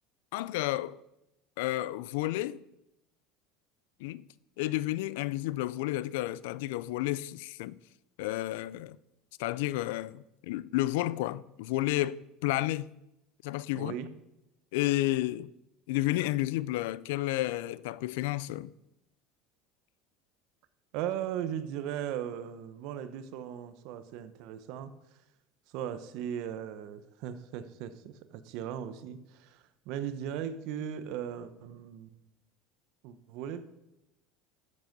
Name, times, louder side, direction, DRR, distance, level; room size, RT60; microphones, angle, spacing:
voice 1, 0.3-1.0 1.6-2.6 4.0-4.3 4.6-7.8 8.2-9.0 9.4-12.9 13.4-13.9 14.7-15.5 15.9-18.7, left 16 dB, 85° left, 0.4 m, -31 dB
voice 2, 13.7-14.1 20.9-24.9 25.7-32.1 33.0-33.7, right 9 dB, 65° right, 1.0 m, -38 dB
12.0 x 7.8 x 5.3 m
supercardioid pair, 140°, 0 cm